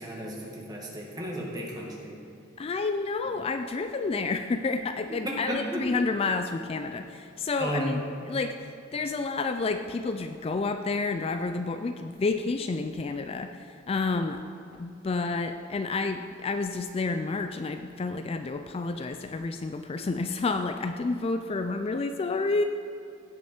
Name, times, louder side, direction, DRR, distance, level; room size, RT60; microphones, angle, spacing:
voice 1, 0.0-2.1 5.1-5.8 7.6-8.2, equal, 20° right, -2 dB, 1.9 m, -34 dB
voice 2, 2.6-8.0 8.3-14.4 14.7-22.6, left 3 dB, 30° left, 7 dB, 0.3 m, -30 dB
16.5 x 6.4 x 4.4 m, 2.7 s
head